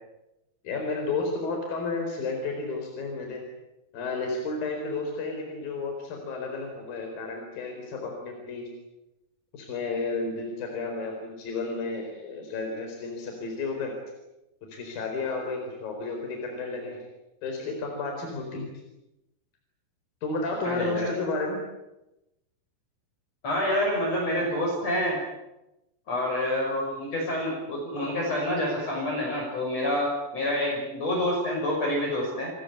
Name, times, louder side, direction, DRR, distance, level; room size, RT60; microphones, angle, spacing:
voice 1, 0.6-3.4 3.9-8.7 9.5-13.9 14.7-17.0 17.4-18.7 20.2-21.6, left 3 dB, 65° left, 2 dB, 6.1 m, -32 dB
voice 2, 20.6-21.1 23.4-25.2 26.1-32.5, left 1 dB, 40° left, -2 dB, 7.1 m, -27 dB
28.5 x 22.0 x 8.2 m, 0.93 s
omnidirectional pair, 4.4 m